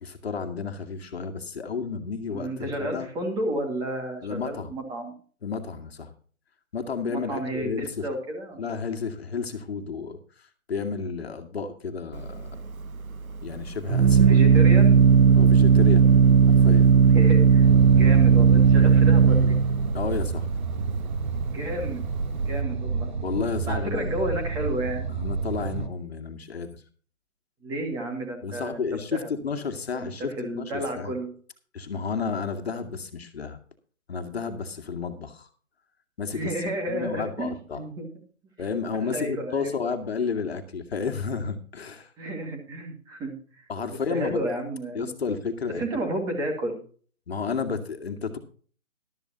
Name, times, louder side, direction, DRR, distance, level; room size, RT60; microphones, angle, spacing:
voice 1, 0.0-3.1 4.2-4.7 5.4-6.1 6.7-8.0 8.6-10.2 10.7-12.6 13.4-14.4 15.3-16.1 16.4-16.9 19.9-20.5 23.2-24.2 25.2-26.8 28.4-31.1 31.7-33.6 34.1-35.5 36.2-36.5 36.9-37.8 38.6-42.1 43.7-44.4 44.9-45.8 47.3-48.4, left 5 dB, 45° left, 7 dB, 2.2 m, -32 dB
voice 2, 2.3-5.1 7.1-8.7 14.2-15.0 17.1-19.6 21.5-22.0 22.4-23.1 23.6-25.1 27.6-28.8 29.1-29.3 29.9-31.3 36.3-38.1 38.9-39.7 42.2-45.2 45.8-46.8, right 1 dB, 10° right, 2 dB, 2.2 m, -32 dB
Organ, 12.1-22.6, right 6 dB, 85° right, 0.9 m, -17 dB
sound 1, 17.6-25.9, right 4 dB, 35° right, 1.2 m, -30 dB
14.5 x 13.0 x 2.9 m, 0.42 s
figure-of-eight pair, 155°, 41 cm